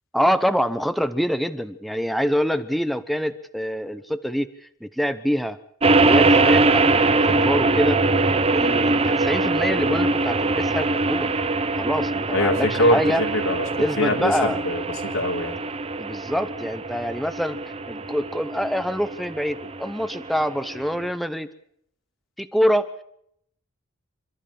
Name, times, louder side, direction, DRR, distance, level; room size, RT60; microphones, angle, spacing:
voice 1, 0.1-4.5 4.8-5.6 6.0-8.0 8.5-11.3 11.8-13.2 13.8-14.6 16.0-17.6 17.9-21.5 22.4-22.9, equal, ahead, 10 dB, 0.8 m, -25 dB
sound 1, 5.8-21.1, right 3 dB, 30° right, 0.9 m, -22 dB
voice 2, 12.3-15.6, left 1 dB, 85° left, 2 dB, 3.6 m, -23 dB
27.5 x 12.5 x 7.4 m, 0.70 s
head